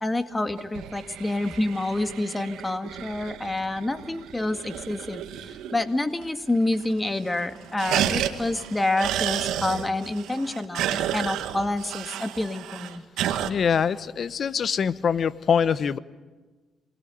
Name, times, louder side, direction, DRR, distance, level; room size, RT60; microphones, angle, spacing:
voice 1, 0.0-13.0, left 2 dB, 15° left, 9 dB, 2.0 m, -28 dB
sound 1, 0.6-5.9 6.2-6.3 6.5-7.1 7.3-13.5, right 11 dB, 85° right, 1.8 m, -31 dB
voice 2, 13.4-16.0, left 7 dB, 50° left, 16 dB, 1.0 m, -24 dB
27.5 x 20.0 x 9.3 m, 1.3 s
cardioid pair, 90°, 0 cm